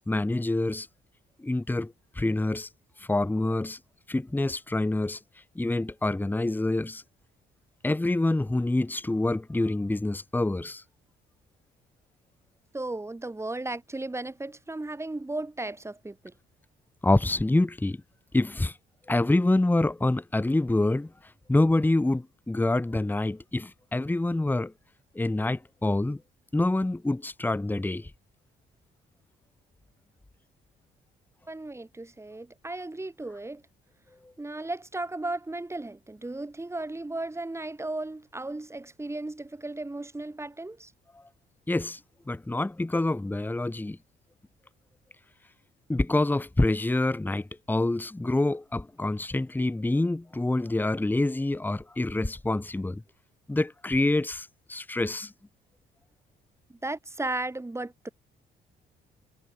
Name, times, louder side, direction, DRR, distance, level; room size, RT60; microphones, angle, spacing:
voice 1, 0.1-0.9 1.4-2.7 3.1-3.8 4.1-5.2 5.6-7.0 7.8-10.8 17.0-18.0 18.3-18.7 19.1-21.1 21.5-24.7 25.1-26.2 26.5-28.1 41.7-42.0 42.3-44.0 45.9-53.0 53.5-55.3, left 2 dB, 10° left, 1.1 m, -26 dB
voice 2, 12.7-16.3 31.5-33.6 34.4-40.9 56.7-58.1, right 2 dB, 15° right, 1.9 m, -35 dB
cardioid pair, 90°, 20 cm